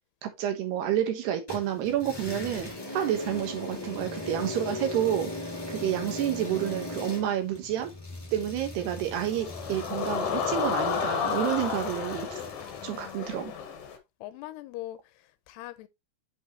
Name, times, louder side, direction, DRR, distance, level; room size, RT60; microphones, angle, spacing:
voice 1, 0.2-7.9 8.3-12.3 12.8-13.5, right 11 dB, 75° right, 3.3 m, -29 dB
sound 1, 1.5-13.2, left 2 dB, 10° left, 1.5 m, -39 dB
sound 2, 9.1-14.0, left 7 dB, 65° left, 2.7 m, -31 dB
voice 2, 12.8-13.7 14.2-15.9, left 15 dB, 85° left, 2.7 m, -42 dB
7.9 x 5.4 x 3.0 m
omnidirectional pair, 4.9 m